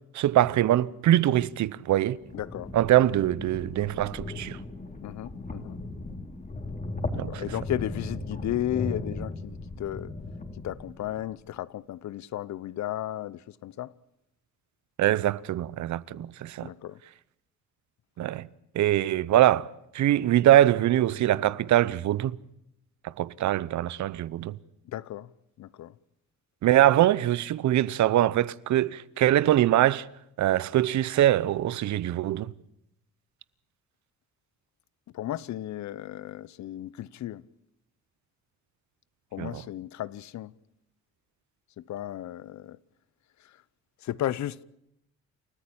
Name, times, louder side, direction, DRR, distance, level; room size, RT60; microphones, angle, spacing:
voice 1, 0.1-2.2 2.7-4.6 7.1-7.5 15.0-16.7 18.2-18.5 18.7-19.7 19.9-22.4 23.0-24.6 26.6-30.1 30.4-32.5 39.4-39.6, right 13 dB, 70° right, 0.8 m, -23 dB
sound 1, 2.1-11.4, left 2 dB, 25° left, 3.2 m, -37 dB
voice 2, 2.3-2.7 5.0-5.8 7.1-10.1 10.6-13.9 16.6-17.0 24.9-25.3 25.6-25.9 35.1-37.4 39.3-40.5 41.8-42.8 44.0-44.6, left 13 dB, 65° left, 0.8 m, -34 dB
29.5 x 14.0 x 8.7 m
cardioid pair, 90°, 30 cm